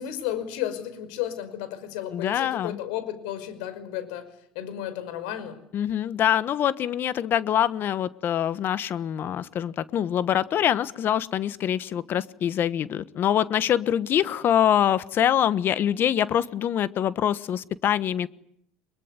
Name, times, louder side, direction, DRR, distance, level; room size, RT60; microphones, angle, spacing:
voice 1, 0.0-4.2 4.6-5.6, left 11 dB, 90° left, 12 dB, 5.4 m, -33 dB
voice 2, 2.1-2.8 5.7-18.3, left 10 dB, 45° left, 16 dB, 1.2 m, -24 dB
23.0 x 22.5 x 9.7 m, 0.72 s
supercardioid pair, 115°, 5 cm